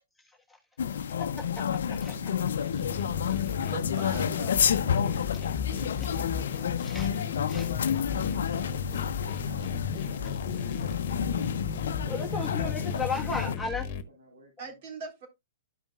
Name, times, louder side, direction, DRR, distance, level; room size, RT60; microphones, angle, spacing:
sound 1, 0.8-13.6, left 8 dB, 70° left, 0.6 m, -30 dB
voice 1, 2.1-2.7 14.1-14.7, left 4 dB, 70° right, 5.1 m, -49 dB
sound 2, 2.7-14.0, left 6 dB, 45° left, 1.2 m, -35 dB
voice 2, 3.4-4.6 14.6-15.3, right 4 dB, 50° right, 3.6 m, -42 dB
voice 3, 6.0-6.5 6.8-7.1 7.5-7.6 8.4-8.6 12.0-13.9, left 4 dB, 5° left, 1.3 m, -35 dB
13.5 x 5.4 x 2.4 m
hypercardioid pair, 125°, 0 cm